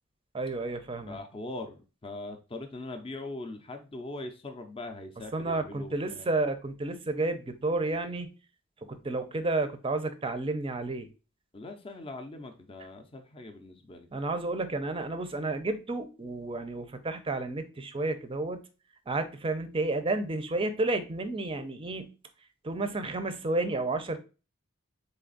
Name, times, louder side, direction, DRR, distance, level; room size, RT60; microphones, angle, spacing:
voice 1, 0.3-1.2 5.3-8.3 8.9-11.1 14.1-18.6 19.1-22.1 22.6-24.2, right 2 dB, 25° right, 9 dB, 0.5 m, -31 dB
voice 2, 1.1-6.3 11.5-14.1, left 2 dB, 25° left, 5 dB, 0.5 m, -41 dB
4.0 x 3.4 x 3.8 m, 0.32 s
head